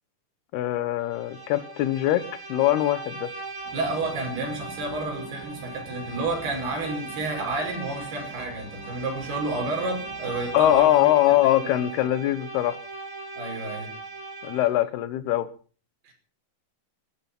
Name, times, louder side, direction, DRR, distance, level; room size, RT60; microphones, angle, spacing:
voice 1, 0.5-3.3 10.5-12.8 14.4-15.5, left 13 dB, 70° left, 14 dB, 2.9 m, -22 dB
Bowed string instrument, 1.0-14.9, right 3 dB, 20° right, 0.6 m, -39 dB
sound 1, 3.6-10.9, right 3 dB, 85° right, 6.4 m, -46 dB
voice 2, 3.7-11.1 11.4-11.7 12.1-12.2 13.4-13.9 16.1-16.2, right 2 dB, 60° right, 3 dB, 7.1 m, -31 dB
17.5 x 13.0 x 6.0 m, 0.40 s
omnidirectional pair, 5.1 m